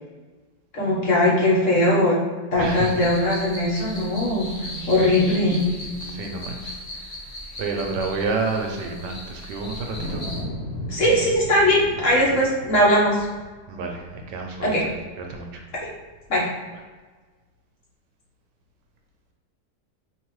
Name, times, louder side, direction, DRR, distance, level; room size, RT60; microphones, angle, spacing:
voice 1, 0.7-2.2 2.5-4.5 4.9-5.7 10.9-13.3 14.6-14.8 16.3-16.5, left 1 dB, 50° left, -5 dB, 1.3 m, -20 dB
sound 1, 2.6-10.4, left 1 dB, 30° left, 1.8 m, -36 dB
voice 2, 2.6-2.9 6.0-7.1 7.6-10.2 13.7-14.9 15.2-15.6, right 4 dB, 80° right, 3 dB, 1.2 m, -30 dB
Wind, 9.7-16.2, left 1 dB, 90° left, 1.3 m, -36 dB
4.5 x 3.0 x 3.1 m, 1.4 s
omnidirectional pair, 1.9 m